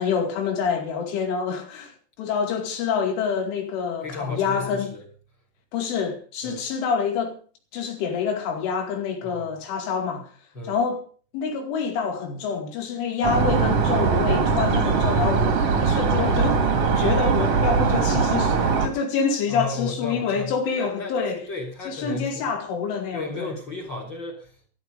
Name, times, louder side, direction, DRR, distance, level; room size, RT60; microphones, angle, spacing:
voice 1, 0.0-4.9 5.7-7.4 7.7-10.3 10.6-11.0 11.3-16.6 17.0-21.4 21.9-23.6, left 6 dB, 80° left, 4.9 m, -27 dB
voice 2, 4.0-5.0 6.4-6.6 9.2-9.6 10.5-10.8 18.1-18.3 19.5-22.5 23.1-24.7, left 3 dB, 25° left, 3.6 m, -34 dB
sound 1, 13.2-18.9, right 5 dB, 50° right, 2.0 m, -21 dB
14.0 x 12.5 x 5.3 m
omnidirectional pair, 5.6 m